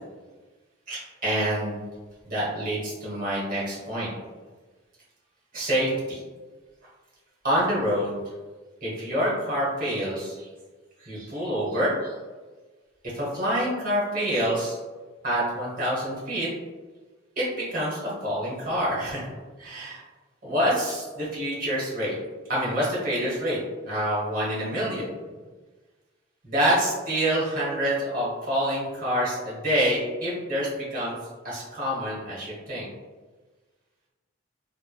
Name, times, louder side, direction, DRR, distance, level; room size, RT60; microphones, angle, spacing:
voice 1, 0.9-1.8 2.3-4.1 5.5-6.2 7.4-8.2 8.8-10.5 11.0-12.1 13.1-14.8 15.2-16.5 17.4-19.3 19.6-20.0 20.4-22.2 22.5-23.6 23.8-25.1 26.4-31.2 31.4-32.9, equal, 45° right, -7 dB, 0.9 m, -27 dB
3.0 x 2.0 x 2.2 m, 1.3 s
head